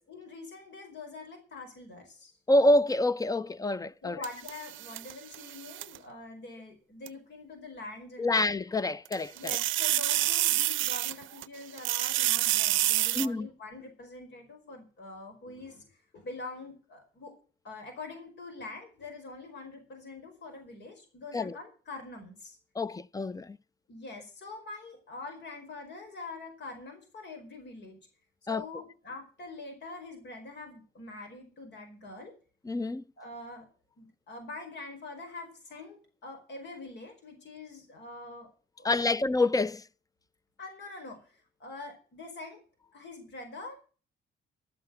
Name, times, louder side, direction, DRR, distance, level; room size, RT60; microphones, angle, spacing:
voice 1, 0.0-2.3 4.0-8.4 9.3-15.8 16.1-17.3 17.6-22.6 23.9-28.0 28.5-32.3 33.2-33.7 34.0-38.5 38.8-39.1 40.6-42.6 42.9-43.8, left 3 dB, 60° left, 4.9 m, -44 dB
voice 2, 2.5-4.2 8.2-9.6 13.1-13.5 21.3-21.6 22.7-23.6 28.5-28.7 32.6-33.0 38.8-39.9, left 2 dB, 20° left, 0.5 m, -27 dB
sound 1, 4.2-6.0 7.1-7.2 9.1-11.5 11.8-13.3, right 15 dB, 75° right, 0.5 m, -28 dB
12.5 x 7.9 x 7.7 m
cardioid pair, 90°, 20 cm